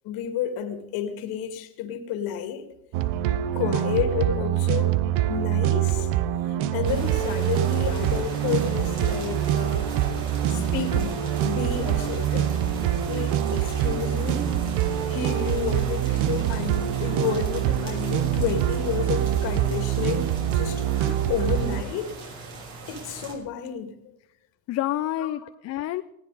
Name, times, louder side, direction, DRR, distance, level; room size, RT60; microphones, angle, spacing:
voice 1, 0.0-2.7 3.5-5.0 5.3-6.1 6.7-9.9 10.5-12.6 13.1-14.6 15.1-20.8 21.3-22.1 22.9-23.9 25.2-25.5, left 8 dB, 60° left, 2.1 m, -30 dB
sound 1, 2.9-21.8, right 11 dB, 70° right, 1.1 m, -25 dB
sound 2, 6.8-23.3, right 3 dB, 55° right, 7.0 m, -39 dB
voice 2, 21.0-21.3 24.7-26.0, left 13 dB, 40° left, 0.7 m, -29 dB
19.5 x 17.0 x 4.1 m
supercardioid pair, 115°, 41 cm